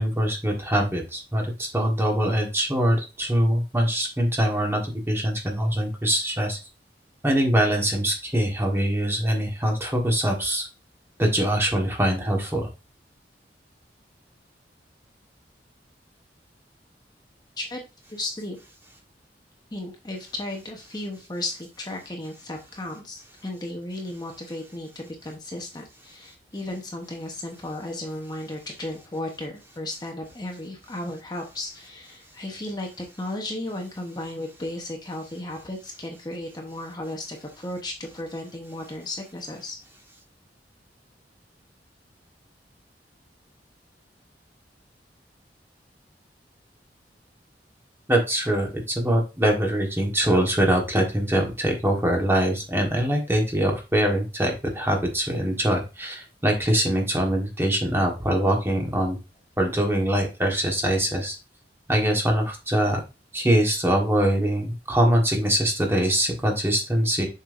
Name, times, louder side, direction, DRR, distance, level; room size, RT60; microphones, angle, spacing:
voice 1, 0.0-6.6 7.2-10.7 11.2-12.7 48.1-59.2 59.6-61.4 61.9-63.0 63.3-67.3, right 1 dB, 15° right, 1 dB, 1.4 m, -23 dB
voice 2, 18.1-18.6 19.7-39.8, left 1 dB, 25° left, 1 dB, 1.0 m, -35 dB
7.1 x 5.4 x 2.6 m, 0.28 s
head